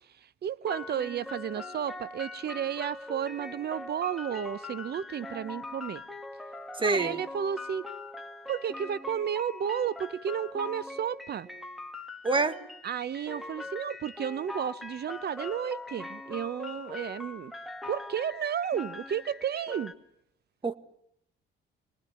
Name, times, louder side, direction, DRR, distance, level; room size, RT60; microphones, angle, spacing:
voice 1, 0.4-6.0 6.8-7.9 8.5-11.5 12.8-17.5 17.9-19.9, right 8 dB, 55° right, 1.0 m, -32 dB
sound 1, 0.6-19.9, left 2 dB, ahead, 2.4 m, -42 dB
voice 2, 6.8-7.2 12.2-12.6 20.6-20.7, right 3 dB, 25° right, 1.7 m, -26 dB
27.0 x 20.5 x 9.3 m
cardioid pair, 90°, 20 cm